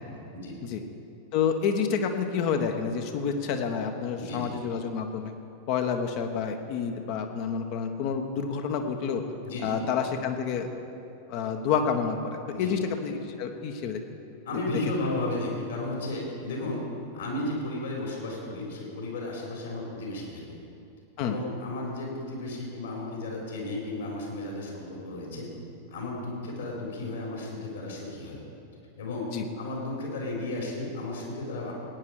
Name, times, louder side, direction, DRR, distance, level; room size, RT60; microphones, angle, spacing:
voice 1, 0.0-0.6 4.1-4.5 9.4-9.8 12.5-12.8 14.4-16.8 17.1-20.6 21.2-25.5 25.9-28.4 29.0-31.7, left 2 dB, 65° left, -2 dB, 4.0 m, -34 dB
voice 2, 1.3-5.3 5.7-9.2 9.6-10.7 11.3-14.0 21.2-21.4 29.3-29.5, left 6 dB, 45° left, 5 dB, 1.3 m, -29 dB
18.0 x 9.7 x 4.8 m, 2.6 s
figure-of-eight pair, 90°, 0 cm